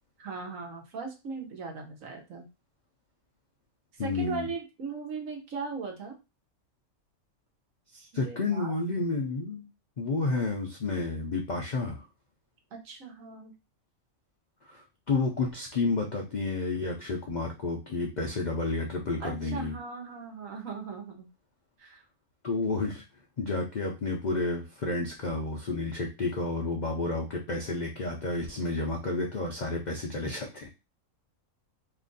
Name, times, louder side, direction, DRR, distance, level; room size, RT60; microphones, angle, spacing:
voice 1, 0.2-2.5 3.9-6.2 8.1-8.7 12.8-13.5 19.2-21.3 21.8-22.0, right 4 dB, 70° right, 3 dB, 1.3 m, -38 dB
voice 2, 4.0-4.5 7.9-9.7 10.0-12.0 14.7-19.8 22.4-23.0 23.4-30.7, left 3 dB, 60° left, 1 dB, 0.4 m, -31 dB
3.0 x 2.4 x 3.8 m, 0.27 s
omnidirectional pair, 1.5 m